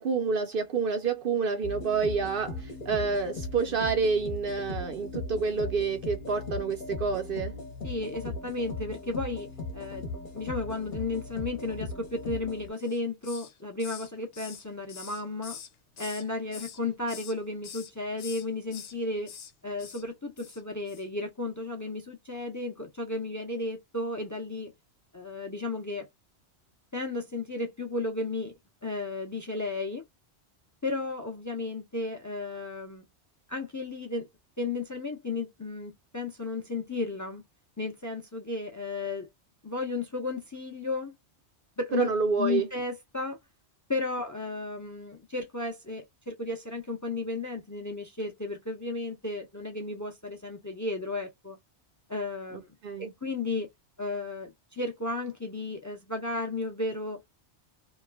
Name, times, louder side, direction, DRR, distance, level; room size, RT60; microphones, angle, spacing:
voice 1, 0.0-7.5 41.9-42.7 52.8-53.1, right 5 dB, 60° right, 0.7 m, -28 dB
sound 1, 1.6-12.7, left 2 dB, 50° left, 1.0 m, -38 dB
voice 2, 7.8-10.1 10.3-15.6 16.0-19.3 19.6-24.7 25.1-26.1 26.9-28.5 28.8-30.0 30.8-33.1 33.5-34.3 34.6-37.4 37.8-39.3 39.6-41.1 41.8-42.1 42.4-43.4 43.9-51.6 52.1-52.7 53.0-53.7 54.0-57.3, left 3 dB, 20° left, 0.6 m, -34 dB
Hiss, 12.8-13.5 13.8-16.3 16.5-17.4 17.6-17.9 18.2-18.9 19.3-19.5 19.8-20.0 20.4-20.6 20.9-21.0, left 7 dB, 80° left, 1.0 m, -44 dB
3.1 x 2.2 x 2.3 m
omnidirectional pair, 1.2 m